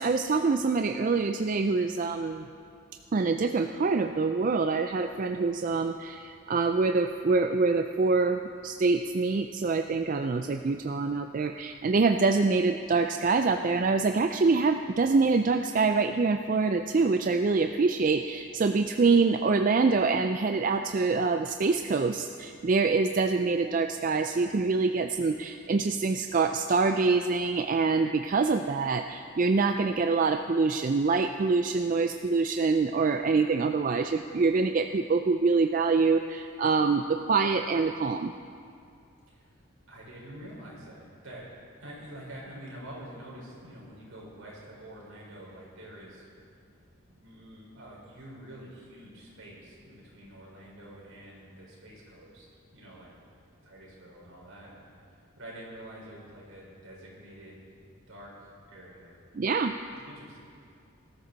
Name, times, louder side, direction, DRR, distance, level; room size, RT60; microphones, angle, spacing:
voice 1, 0.0-2.5 3.1-38.3 59.3-59.7, right 4 dB, 40° right, 6 dB, 0.3 m, -25 dB
voice 2, 39.9-41.5 41.8-46.2 47.1-52.5 52.7-53.1 53.6-54.7 55.4-57.6 58.1-59.2 60.0-60.4, right 1 dB, 70° right, -5 dB, 4.7 m, -47 dB
19.5 x 13.0 x 4.0 m, 2.4 s
head